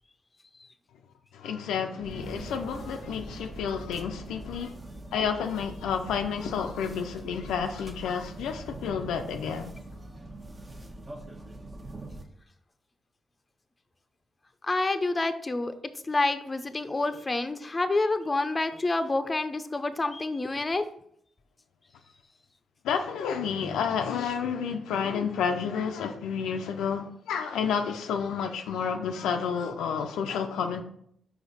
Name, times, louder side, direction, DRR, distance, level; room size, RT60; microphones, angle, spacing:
voice 1, 1.3-4.8 5.1-9.7 22.8-30.8, left 6 dB, 80° left, 0.4 m, -30 dB
sound 1, 2.0-12.2, right 2 dB, 30° right, 1.0 m, -43 dB
voice 2, 14.6-15.7 16.0-20.8, left 2 dB, 30° left, 0.6 m, -28 dB
5.0 x 4.9 x 4.0 m
supercardioid pair, 50°, 0 cm